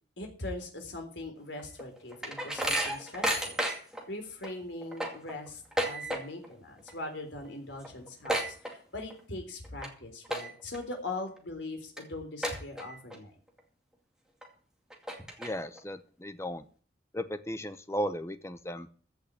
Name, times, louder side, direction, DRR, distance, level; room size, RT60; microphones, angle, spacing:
voice 1, 0.2-13.4, left 2 dB, 75° left, 3 dB, 3.8 m, -41 dB
sound 1, 1.6-4.0 4.4-4.5 4.8-6.5 6.8-7.2 7.4-7.5 7.8-9.2 9.6-9.9 10.2-10.8 11.3-11.4 12.0-12.1 12.4-13.2 13.6-13.7 14.4-14.5 14.9-15.8, right 1 dB, 5° right, 2.2 m, -32 dB
voice 2, 15.4-16.6 17.1-18.9, equal, 15° left, 11 dB, 0.8 m, -35 dB
15.0 x 5.6 x 8.4 m, 0.44 s
head